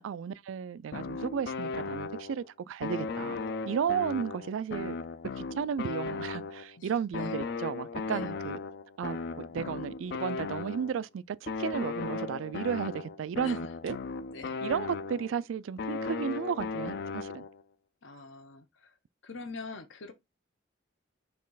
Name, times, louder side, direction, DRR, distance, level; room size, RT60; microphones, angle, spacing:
voice 1, 0.0-3.4 3.6-5.0 5.4-8.6 9.0-14.0 14.6-17.5, right 7 dB, 90° right, 0.3 m, -34 dB
sound 1, 0.9-2.5 2.8-6.8 7.1-11.0 11.5-15.4 15.8-17.6, left 4 dB, 55° left, 0.4 m, -36 dB
voice 2, 6.8-7.4 8.0-8.4 13.4-13.7 14.3-14.6 18.0-19.0 19.2-20.1, left 4 dB, 80° left, 0.9 m, -45 dB
4.2 x 3.1 x 3.9 m
head